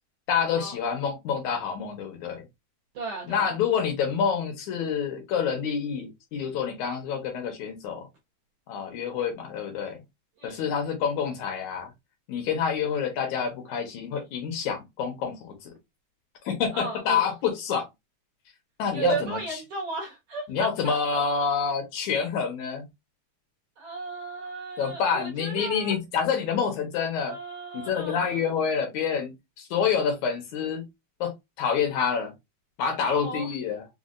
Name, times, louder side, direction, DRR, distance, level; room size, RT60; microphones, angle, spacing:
voice 1, 0.3-2.4 3.3-8.1 8.7-10.0 10.4-11.9 12.3-15.8 16.4-17.9 18.8-19.4 20.5-22.8 24.8-27.4 27.7-30.8 31.2-31.3 31.6-32.3 32.8-33.8, left 6 dB, 70° left, 2.1 m, -27 dB
voice 2, 2.9-3.6 10.4-10.6 16.7-17.2 18.9-21.2 23.8-25.9 27.2-28.4 33.0-33.5, right 4 dB, 65° right, 1.7 m, -34 dB
5.2 x 2.3 x 2.4 m
omnidirectional pair, 3.6 m